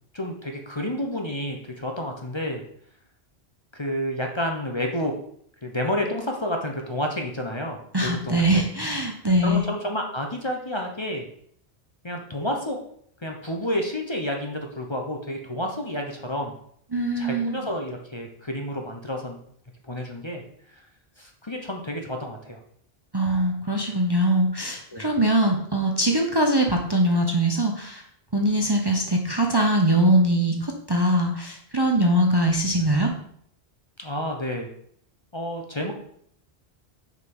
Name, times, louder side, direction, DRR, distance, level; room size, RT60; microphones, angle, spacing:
voice 1, 0.1-2.6 3.7-5.1 5.6-8.6 9.4-11.3 12.0-12.8 13.2-16.5 17.2-19.4 19.8-20.4 20.7-20.8 21.2-22.6 24.9-25.1 34.0-34.7 35.3-35.9, left 1 dB, 30° left, 2 dB, 1.0 m, -30 dB
voice 2, 7.9-9.6 16.9-17.7 23.1-28.0 28.3-33.1, right 1 dB, 25° right, 1 dB, 0.8 m, -22 dB
6.7 x 5.2 x 5.4 m, 0.65 s
omnidirectional pair, 1.1 m